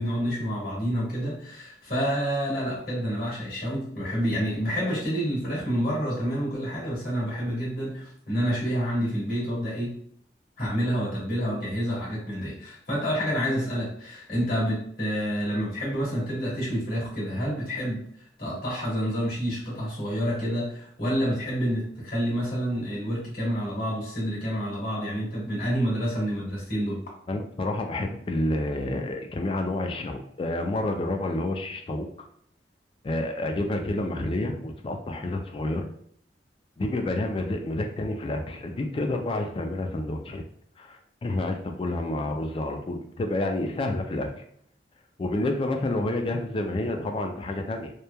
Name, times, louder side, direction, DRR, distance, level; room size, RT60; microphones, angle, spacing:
voice 1, 0.0-9.9 10.6-18.0 18.4-27.0, equal, 55° left, -6 dB, 1.4 m, -28 dB
voice 2, 27.3-32.1 33.0-35.9 36.8-40.4 40.8-44.3 45.2-47.9, left 2 dB, 30° left, 4 dB, 0.3 m, -29 dB
2.9 x 2.1 x 2.2 m, 0.65 s
head